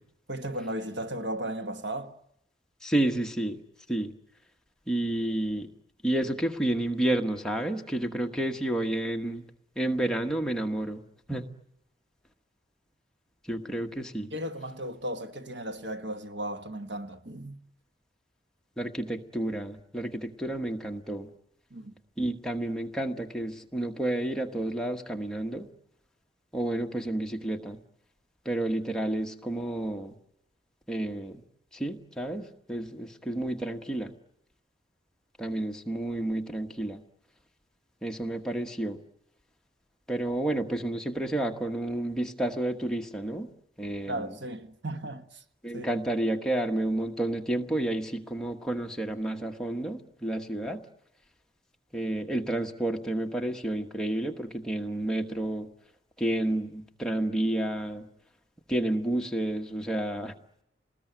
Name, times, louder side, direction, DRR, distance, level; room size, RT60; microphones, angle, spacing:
voice 1, 0.3-2.2 14.3-17.6 21.7-22.0 44.1-45.4 45.7-45.9, right 1 dB, 70° right, 1.4 m, -35 dB
voice 2, 2.8-3.6 3.9-4.1 4.9-5.7 6.0-9.4 9.8-11.0 11.3-11.5 13.5-14.3 18.8-21.3 22.2-25.7 26.5-27.8 28.4-30.1 30.9-31.4 31.7-34.1 35.4-37.0 38.0-39.0 40.1-43.5 43.8-44.3 45.6-50.9 51.9-55.7 56.2-58.1 58.7-60.3, right 1 dB, 5° left, 1.3 m, -30 dB
28.0 x 20.0 x 9.3 m
head